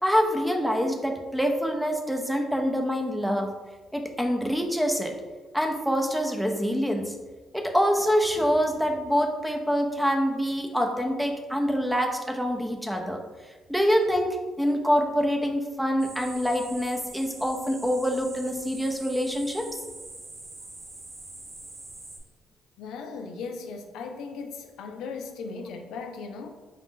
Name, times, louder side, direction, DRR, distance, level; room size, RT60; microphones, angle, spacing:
voice 1, 0.0-3.5 3.9-5.1 5.5-7.2 7.5-13.2 13.7-19.7, equal, ahead, 3 dB, 0.5 m, -25 dB
sound 1, 16.0-22.2, right 2 dB, 40° right, 1.0 m, -44 dB
voice 2, 22.8-26.5, left 4 dB, 85° left, 5 dB, 0.4 m, -37 dB
4.0 x 2.5 x 3.7 m, 1.3 s
cardioid pair, 90°, 0 cm